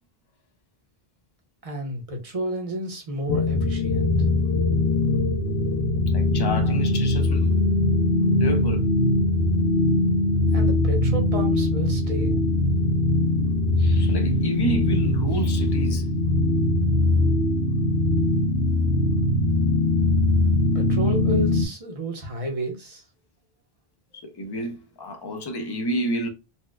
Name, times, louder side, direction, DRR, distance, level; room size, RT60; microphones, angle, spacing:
voice 1, 1.6-4.1 10.5-12.4 20.7-23.0 24.4-24.5, right 1 dB, 35° right, 0.9 m, -31 dB
sound 1, 3.3-21.7, left 2 dB, 75° left, 0.8 m, -21 dB
voice 2, 6.1-7.6 8.2-8.9 13.8-16.1 24.1-26.3, right 1 dB, 30° left, 0.5 m, -30 dB
4.2 x 2.2 x 2.2 m
omnidirectional pair, 1.1 m